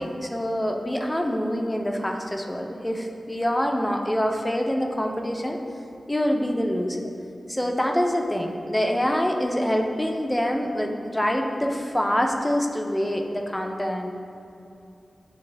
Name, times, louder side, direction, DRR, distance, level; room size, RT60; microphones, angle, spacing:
voice 1, 0.0-5.6 6.1-7.0 7.5-14.1, equal, 10° left, 2 dB, 0.5 m, -25 dB
9.3 x 3.4 x 3.3 m, 2.7 s
wide cardioid pair, 105°, 0 cm